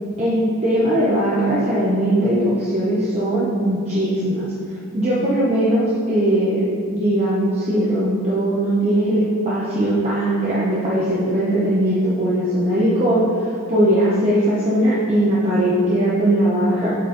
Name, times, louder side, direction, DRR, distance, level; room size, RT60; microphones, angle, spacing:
voice 1, 0.2-4.5 4.9-6.7 6.9-16.9, right 1 dB, 30° right, -8 dB, 1.0 m, -19 dB
8.5 x 4.2 x 4.3 m, 2.6 s
head